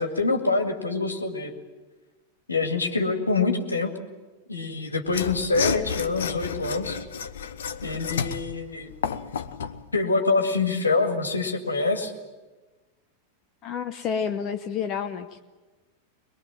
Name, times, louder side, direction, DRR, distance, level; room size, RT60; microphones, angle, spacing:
voice 1, 0.0-1.5 2.5-3.9 4.5-7.0 7.8-8.9 9.9-12.1, left 3 dB, 80° left, 5 dB, 2.1 m, -25 dB
Mechanisms / Sawing, 5.1-9.8, left 7 dB, 65° left, 0.9 m, -31 dB
voice 2, 13.6-15.4, left 7 dB, 35° left, 8 dB, 1.0 m, -29 dB
23.0 x 22.0 x 7.6 m, 1.2 s
figure-of-eight pair, 90°, 0 cm